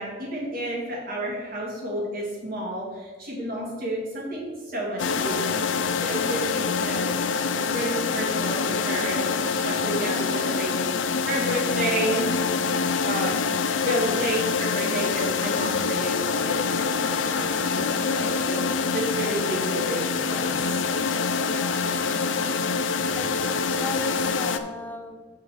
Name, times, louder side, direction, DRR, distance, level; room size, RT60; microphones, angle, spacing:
voice 1, 0.0-5.6 6.0-7.0 7.5-9.3 9.6-12.3 13.0-13.3 13.8-18.6 18.9-20.8, right 1 dB, 50° right, -4 dB, 2.4 m, -31 dB
sound 1, 5.0-24.6, left 5 dB, 85° left, 0.5 m, -25 dB
voice 2, 21.5-22.5 23.1-25.2, left 1 dB, 10° left, 6 dB, 0.4 m, -38 dB
5.7 x 5.0 x 6.4 m, 1.3 s
head